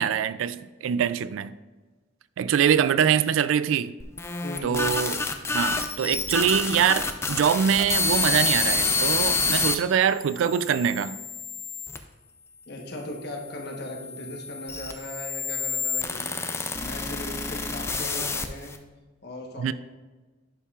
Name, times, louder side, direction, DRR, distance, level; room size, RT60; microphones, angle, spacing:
voice 1, 0.0-1.5 2.4-3.9 4.6-5.2 5.5-11.2 19.6-19.7, right 8 dB, 75° right, 0.3 m, -24 dB
sound 1, 4.0-9.8 10.4-12.0 12.8-18.8, left 3 dB, 15° left, 0.4 m, -28 dB
voice 2, 4.4-4.8 12.7-16.3 16.8-18.8 19.2-19.7, left 1 dB, 55° left, 1.2 m, -38 dB
11.0 x 5.6 x 2.4 m
head